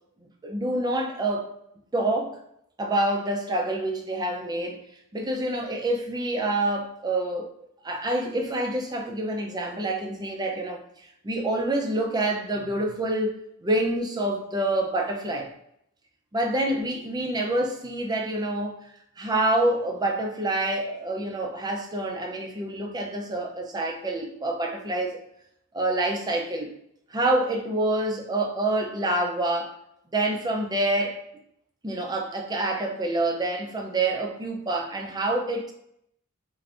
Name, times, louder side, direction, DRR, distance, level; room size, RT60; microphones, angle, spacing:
voice 1, 0.4-1.5 1.9-2.4 2.8-4.8 5.1-7.5 7.8-15.5 16.3-18.8 19.2-25.2 25.7-26.7 27.1-29.7 30.1-31.2 31.8-35.7, right 1 dB, 20° right, 1 dB, 0.5 m, -27 dB
3.3 x 2.5 x 2.5 m, 0.74 s
head